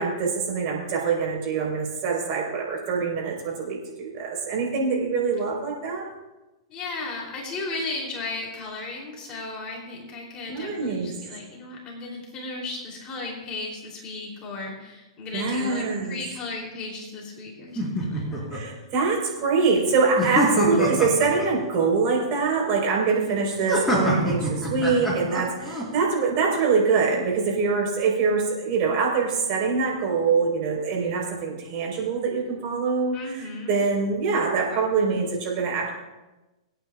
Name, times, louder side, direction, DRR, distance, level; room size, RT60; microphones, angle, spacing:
voice 1, 0.0-6.1 10.5-11.1 15.3-16.2 18.5-35.9, right 4 dB, 45° right, -1 dB, 4.2 m, -24 dB
voice 2, 6.7-18.5 33.1-33.8, left 3 dB, 25° left, -2 dB, 3.2 m, -35 dB
sound 1, 17.8-18.6 20.2-21.5 23.7-25.8, equal, 5° left, 4.3 m, -25 dB
26.5 x 9.0 x 2.4 m, 1.1 s
hypercardioid pair, 140°, 3 cm